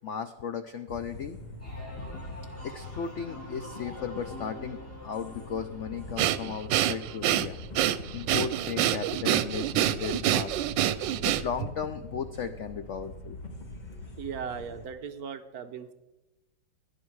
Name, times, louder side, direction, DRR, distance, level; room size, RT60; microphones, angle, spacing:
voice 1, 0.0-1.4 2.6-7.6 8.1-10.6 11.3-13.4, left 7 dB, 80° left, 10 dB, 0.6 m, -35 dB
sound 1, 0.9-14.9, left 2 dB, 30° left, 1.0 m, -43 dB
sound 2, 1.6-11.1 11.5-12.1, left 1 dB, 5° left, 4.6 m, -47 dB
Breathing, 6.2-11.7, right 12 dB, 90° right, 1.3 m, -26 dB
voice 2, 14.2-15.9, right 7 dB, 65° right, 9 dB, 1.1 m, -38 dB
16.5 x 9.8 x 4.7 m, 0.99 s
omnidirectional pair, 2.0 m